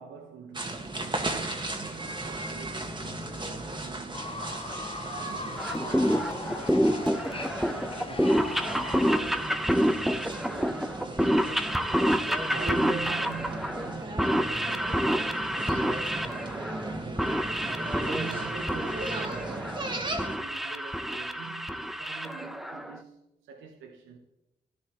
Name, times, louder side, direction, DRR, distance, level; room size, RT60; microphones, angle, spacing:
voice 1, 0.0-4.4 5.1-11.8 12.5-17.5 18.0-23.2 23.5-24.2, right 5 dB, 85° right, 1.1 m, -44 dB
sound 1, 0.5-20.4, right 2 dB, 25° right, 1.6 m, -36 dB
Fowl / Bird, 4.1-9.2, left 3 dB, 30° left, 1.0 m, -39 dB
sound 2, 5.6-23.0, equal, ahead, 0.8 m, -28 dB
13.0 x 10.0 x 3.0 m
supercardioid pair, 45°, 20 cm